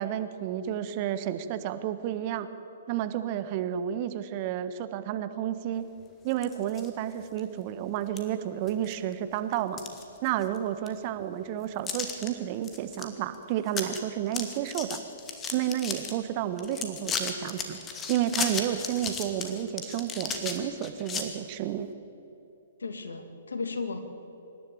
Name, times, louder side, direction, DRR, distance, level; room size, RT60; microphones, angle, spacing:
voice 1, 0.0-2.5 2.9-5.9 6.2-9.8 10.2-15.0 15.5-17.8 18.1-21.9, right 11 dB, 40° right, 11 dB, 1.3 m, -31 dB
sound 1, 6.3-6.9 7.4-7.5 8.2-8.3 8.7-9.1 9.5-10.6 10.9-11.0 11.9-12.3 12.6-13.1 13.3-13.4 13.7-14.0 14.3-16.1 16.6-21.2, left 5 dB, 20° left, 2.3 m, -35 dB
voice 2, 22.8-24.0, left 4 dB, 75° left, 8 dB, 2.3 m, -34 dB
25.5 x 12.0 x 8.8 m, 3.0 s
figure-of-eight pair, 120°, 0 cm